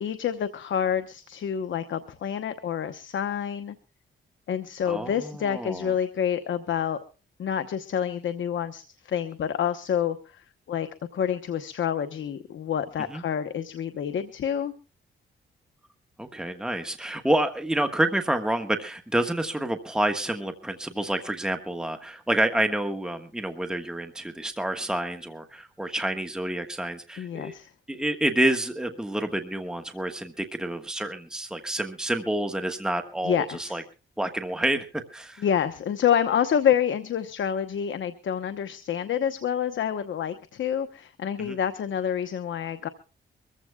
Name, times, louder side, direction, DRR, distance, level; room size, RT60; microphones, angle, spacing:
voice 1, 0.0-3.7 4.5-7.0 7.4-10.9 11.1-14.7 27.2-27.7 33.2-33.8 35.4-42.9, left 8 dB, 70° left, 10 dB, 1.0 m, -28 dB
voice 2, 4.9-5.9 13.1-13.2 16.2-27.5 27.9-33.8 34.2-34.9 35.1-35.4 41.4-41.6, right 1 dB, 5° right, 6 dB, 1.5 m, -28 dB
24.0 x 15.0 x 2.3 m, 0.35 s
cardioid pair, 75°, 21 cm